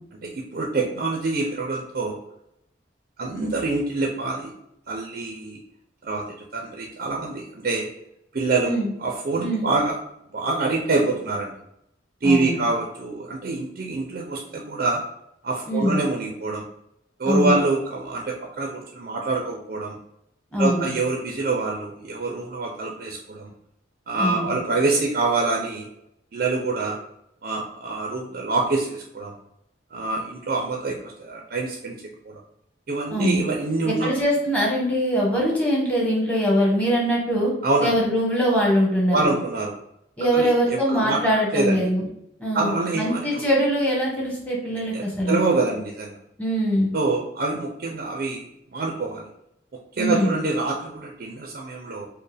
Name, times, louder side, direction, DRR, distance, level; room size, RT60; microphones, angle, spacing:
voice 1, 0.2-2.2 3.2-4.5 4.9-5.6 6.0-6.2 6.5-7.9 8.3-10.0 10.3-11.5 12.2-15.0 15.4-16.6 17.2-20.0 20.6-23.5 24.1-25.9 26.3-27.0 27.4-29.3 29.9-32.0 32.3-32.4 32.9-34.1 37.6-37.9 39.1-39.7 40.3-41.8 42.5-43.4 44.9-46.2 46.9-49.3 50.0-52.1, right 3 dB, 50° right, 0 dB, 0.5 m, -25 dB
voice 2, 12.2-12.6 15.7-16.0 17.2-17.6 20.5-20.9 24.2-24.5 33.1-33.4 33.8-37.5 37.8-39.3 40.2-42.0 42.4-45.4 46.4-46.9 50.0-50.4, equal, 5° left, -4 dB, 1.1 m, -22 dB
4.3 x 2.1 x 3.3 m, 0.79 s
head